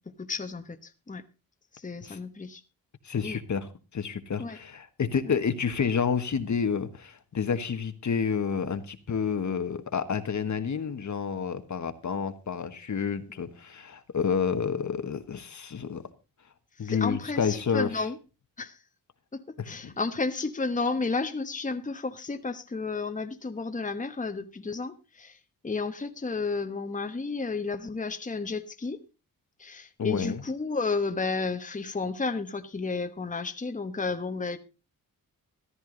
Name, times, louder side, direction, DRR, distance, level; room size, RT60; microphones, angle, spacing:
voice 1, 0.2-1.2 1.7-2.6 3.2-3.4 4.4-4.6 5.2-5.4 16.8-18.2 18.6-18.8 19.3-25.4 25.6-29.0 29.6-34.6, left 4 dB, 20° left, 1.2 m, -32 dB
voice 2, 3.0-16.0 16.8-18.0 19.6-19.9 30.0-30.4, left 6 dB, 55° left, 1.4 m, -29 dB
14.0 x 12.5 x 3.9 m
cardioid pair, 85°, 35 cm